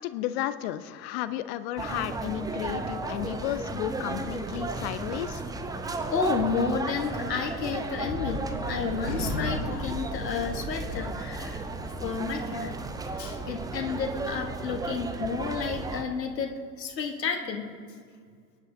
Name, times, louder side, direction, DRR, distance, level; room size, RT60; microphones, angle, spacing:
voice 1, 0.0-5.5, left 12 dB, 40° left, 14 dB, 0.6 m, -33 dB
sound 1, 1.8-16.0, right 3 dB, 10° right, 0.6 m, -34 dB
voice 2, 6.1-11.6 12.0-12.8 13.2-18.0, left 5 dB, 75° left, 5 dB, 1.3 m, -31 dB
Gunshot gunfire, 8.0-14.6, left 2 dB, 55° left, 2.4 m, -38 dB
23.0 x 10.5 x 2.7 m, 2.1 s
figure-of-eight pair, 85°, 50 cm